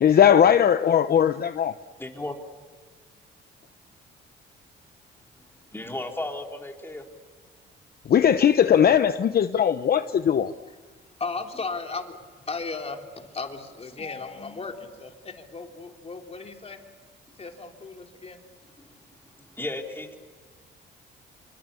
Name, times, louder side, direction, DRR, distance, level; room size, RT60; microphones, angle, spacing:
voice 1, 0.0-1.7 8.1-10.5, left 9 dB, 50° left, 10 dB, 0.9 m, -19 dB
voice 2, 2.0-2.4 5.7-7.0 18.8-18.9 19.6-20.2, left 2 dB, 10° left, 2 dB, 4.2 m, -34 dB
voice 3, 11.2-16.8 17.4-18.4, left 4 dB, 30° left, 3 dB, 3.4 m, -36 dB
28.0 x 24.5 x 7.1 m, 1.5 s
cardioid pair, 90°, 20 cm